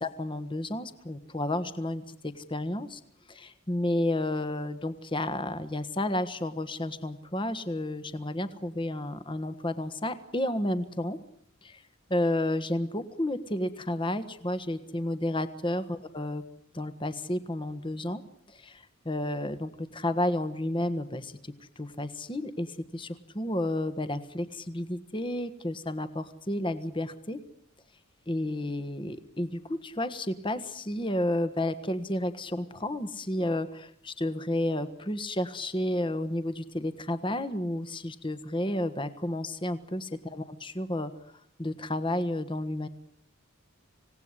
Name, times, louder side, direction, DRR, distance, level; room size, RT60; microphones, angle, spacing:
voice 1, 0.0-3.0 3.3-11.2 11.6-11.8 12.1-16.4 16.7-18.2 18.5-27.4 28.3-41.1 41.6-42.9, left 1 dB, 25° left, 11 dB, 1.5 m, -31 dB
26.5 x 18.0 x 9.8 m, 0.72 s
head